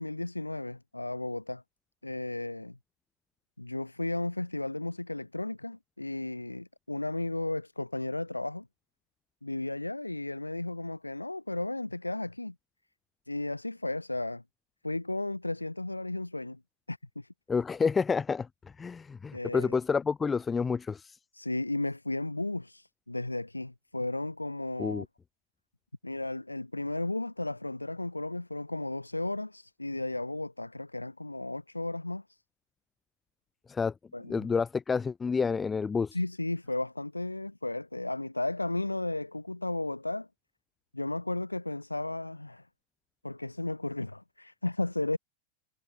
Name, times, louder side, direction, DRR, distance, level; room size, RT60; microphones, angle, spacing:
voice 1, 0.0-1.6 2.0-2.8 3.6-8.7 9.4-12.5 13.3-14.4 14.8-16.6 16.9-17.3 19.3-19.8 21.3-25.0 26.0-32.4 34.1-34.5 36.1-40.3 40.9-42.7 43.2-45.2, left 2 dB, 85° left, 3.4 m, -34 dB
voice 2, 17.5-18.5 18.8-21.2 24.8-25.1 33.7-33.9 34.3-36.2, left 5 dB, 15° left, 2.0 m, -29 dB
figure-of-eight pair, 90°, 0 cm